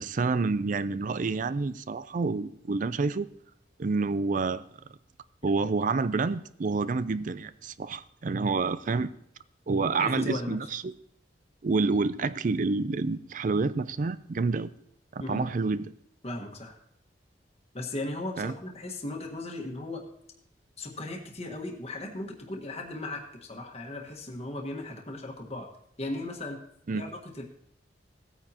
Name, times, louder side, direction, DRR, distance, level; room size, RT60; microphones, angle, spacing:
voice 1, 0.0-3.3 3.8-4.6 5.4-9.1 9.7-10.9 11.6-14.7 15.1-15.9 18.4-18.5 26.9-27.1, right 4 dB, 45° right, 15 dB, 0.4 m, -28 dB
voice 2, 10.0-10.6 15.2-15.4 16.2-16.7 17.7-20.0 20.8-25.7 26.0-26.6 26.9-27.4, left 2 dB, 35° left, 0 dB, 1.5 m, -37 dB
17.0 x 9.1 x 2.9 m, 0.70 s
head